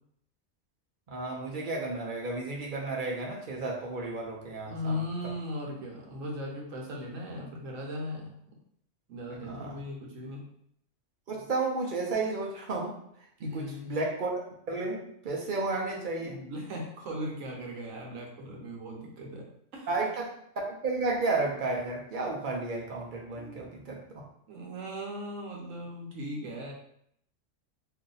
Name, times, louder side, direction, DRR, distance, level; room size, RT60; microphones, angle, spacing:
voice 1, 1.1-5.0 9.4-9.8 11.3-12.9 13.4-14.4 14.7-16.4 19.9-20.3 20.6-24.2, right 3 dB, 50° right, -2 dB, 0.6 m, -32 dB
voice 2, 4.7-8.3 9.1-10.4 13.4-14.0 16.2-19.9 23.3-23.7 24.5-26.7, left 1 dB, 75° right, -1 dB, 1.2 m, -38 dB
2.6 x 2.5 x 3.9 m, 0.70 s
omnidirectional pair, 1.4 m